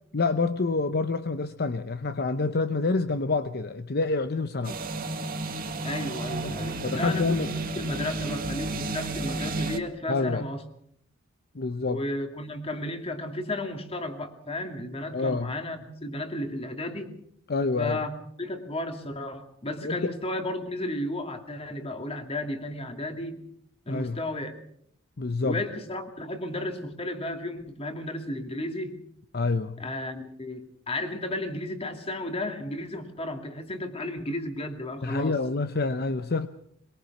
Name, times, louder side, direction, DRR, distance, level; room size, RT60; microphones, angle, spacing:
voice 1, 0.1-4.8 6.4-6.5 6.8-7.5 10.1-10.5 11.5-12.0 15.1-15.5 17.5-18.0 19.8-20.1 23.9-24.2 25.2-25.6 29.3-29.8 35.0-36.5, left 3 dB, 50° left, 10 dB, 0.8 m, -27 dB
sound 1, 4.6-9.8, right 2 dB, 45° right, 1.8 m, -32 dB
voice 2, 5.8-10.6 11.9-17.1 17.8-18.1 18.4-23.4 23.9-24.5 25.4-29.0 29.8-35.4, left 1 dB, 30° left, 6 dB, 2.5 m, -33 dB
22.5 x 22.0 x 6.0 m, 0.70 s
head